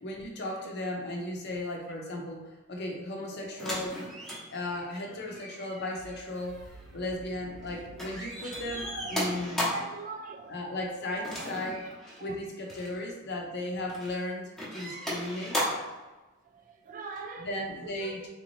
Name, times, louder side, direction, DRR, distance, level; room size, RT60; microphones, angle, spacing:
voice 1, 0.0-2.4 2.7-4.1 4.5-6.6 6.9-9.7 10.5-11.8 12.2-15.7 17.4-18.3, left 1 dB, 50° left, 0 dB, 0.6 m, -36 dB
sound 1, 3.6-7.7 8.0-10.0 11.2-12.2 12.6-12.9 13.6-14.2 14.6-16.0 17.2-17.3, left 1 dB, ahead, 0.8 m, -36 dB
voice 2, 5.0-5.4 7.7-7.8 8.4-10.6 11.2-11.5 12.2-12.4 12.8-12.9 16.4-17.6 17.8-18.3, right 4 dB, 40° right, 3 dB, 0.3 m, -44 dB
sound 2, 6.0-11.6, right 2 dB, 70° right, 0.6 m, -51 dB
3.6 x 2.7 x 3.1 m, 1.1 s
head